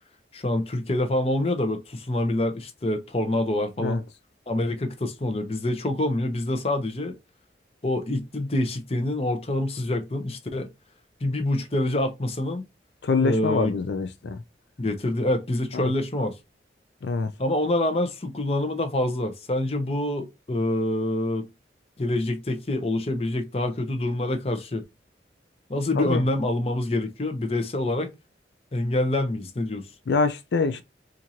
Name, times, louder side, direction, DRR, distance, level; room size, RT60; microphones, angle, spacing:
voice 1, 0.3-4.0 4.5-7.1 7.8-10.7 11.2-12.6 13.2-13.8 14.8-16.4 17.4-21.5 22.0-24.8 25.7-28.1 28.7-29.8, left 1 dB, 35° left, 0.7 m, -26 dB
voice 2, 13.0-14.4 15.8-15.9 17.0-17.3 26.0-26.2 30.1-30.8, left 4 dB, 70° left, 0.4 m, -25 dB
4.4 x 2.5 x 2.8 m
head